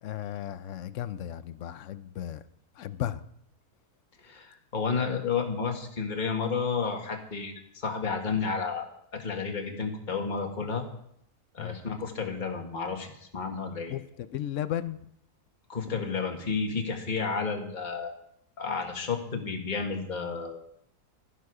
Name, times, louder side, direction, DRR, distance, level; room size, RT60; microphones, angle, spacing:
voice 1, 0.0-2.4 2.8-3.2 11.6-11.8 13.9-15.0, left 11 dB, 65° left, 14 dB, 0.8 m, -35 dB
voice 2, 4.2-8.9 9.1-10.8 11.5-13.9 15.7-18.2 18.6-20.6, left 5 dB, 30° left, 2 dB, 1.7 m, -31 dB
13.0 x 11.0 x 4.9 m, 0.72 s
omnidirectional pair, 1.7 m